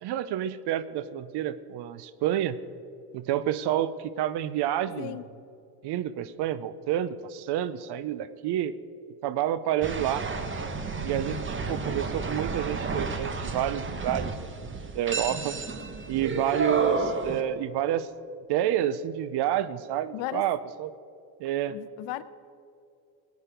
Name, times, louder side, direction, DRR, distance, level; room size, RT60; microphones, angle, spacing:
voice 1, 0.0-2.6 3.1-5.2 5.8-8.8 9.2-10.2 11.0-15.6 16.1-18.1 18.5-20.9 21.4-21.8, right 11 dB, 55° right, 15 dB, 0.8 m, -29 dB
sound 1, 9.8-17.4, right 3 dB, 25° right, 1.3 m, -31 dB
voice 2, 20.1-20.4 21.7-22.2, left 15 dB, 70° left, 15 dB, 0.8 m, -35 dB
17.5 x 9.7 x 5.2 m, 2.5 s
supercardioid pair, 90°, 47 cm